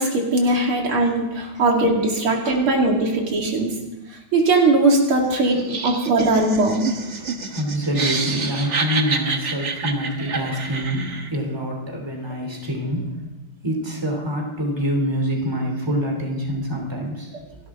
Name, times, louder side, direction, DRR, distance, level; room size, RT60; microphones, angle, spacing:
voice 1, 0.0-3.7 4.3-6.8, right 2 dB, 90° right, 0 dB, 3.3 m, -19 dB
voice 2, 1.4-3.2 5.2-5.3 7.0-13.1 13.6-17.3, equal, 10° right, 1 dB, 3.0 m, -26 dB
Laughter, 5.5-11.4, right 4 dB, 40° right, 1.3 m, -28 dB
28.0 x 12.0 x 3.8 m, 1.0 s
omnidirectional pair, 2.3 m